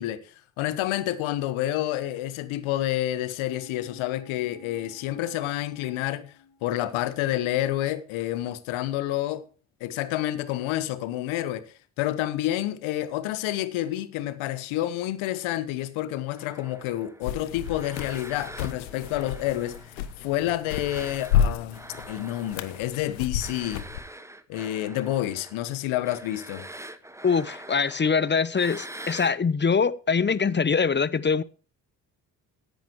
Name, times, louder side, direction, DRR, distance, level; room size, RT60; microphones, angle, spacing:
voice 1, 0.0-6.3 6.6-9.5 9.8-23.9 24.5-26.7, left 14 dB, 70° left, 1.3 m, -29 dB
sound 1, 3.4-7.2 7.5-7.6, left 5 dB, 55° left, 1.6 m, -51 dB
sound 2, 16.4-20.3 20.7-29.4, right 1 dB, 5° right, 1.1 m, -44 dB
sound 3, 17.2-24.0, left 9 dB, 90° left, 0.9 m, -31 dB
voice 2, 27.2-31.4, left 5 dB, 20° left, 0.8 m, -23 dB
14.5 x 10.5 x 3.1 m
hypercardioid pair, 45°, 49 cm